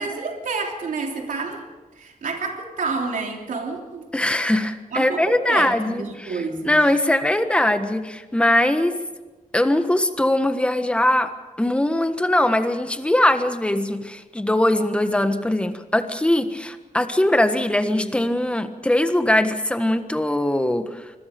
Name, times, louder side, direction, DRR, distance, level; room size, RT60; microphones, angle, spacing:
voice 1, 0.0-1.7 1.9-4.1 4.9-6.8, right 4 dB, 70° right, 1 dB, 3.2 m, -29 dB
voice 2, 4.1-9.0 9.5-11.3 11.6-21.1, left 1 dB, 10° left, 8 dB, 1.4 m, -21 dB
26.0 x 21.5 x 5.2 m, 1.2 s
wide cardioid pair, 150°, 14 cm